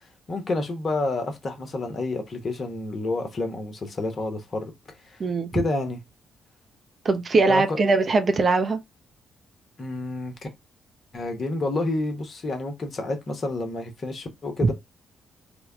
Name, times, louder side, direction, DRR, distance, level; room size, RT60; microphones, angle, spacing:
voice 1, 0.3-4.7 5.5-6.0 7.4-7.8 9.8-10.3 11.1-14.7, left 2 dB, 45° left, 1.2 m, -29 dB
voice 2, 5.2-5.5 7.0-8.8 14.6-14.7, right 3 dB, 45° right, 0.7 m, -21 dB
3.4 x 2.4 x 3.5 m
figure-of-eight pair, 40°, 0 cm